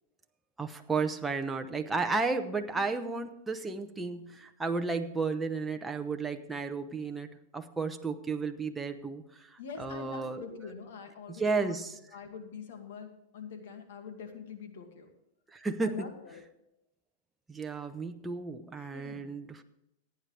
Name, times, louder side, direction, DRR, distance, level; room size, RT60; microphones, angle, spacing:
voice 1, 0.6-7.3 7.5-10.4 11.3-11.9 15.5-15.9 17.5-19.6, right 4 dB, 10° right, 5 dB, 0.8 m, -33 dB
voice 2, 9.6-11.8 12.1-15.1 15.8-16.4 18.9-19.3, left 6 dB, 75° left, 5 dB, 2.2 m, -44 dB
16.0 x 9.2 x 3.4 m, 0.84 s
supercardioid pair, 145°, 0 cm